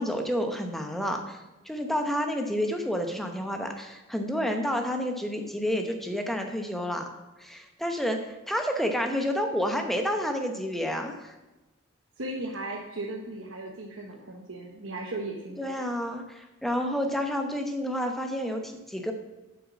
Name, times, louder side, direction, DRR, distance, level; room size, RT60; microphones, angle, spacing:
voice 1, 0.0-7.1 7.4-11.3 15.6-19.1, equal, ahead, 4 dB, 0.9 m, -30 dB
voice 2, 12.2-15.7, right 2 dB, 75° right, -1 dB, 1.1 m, -36 dB
8.1 x 6.0 x 7.4 m, 1.1 s
head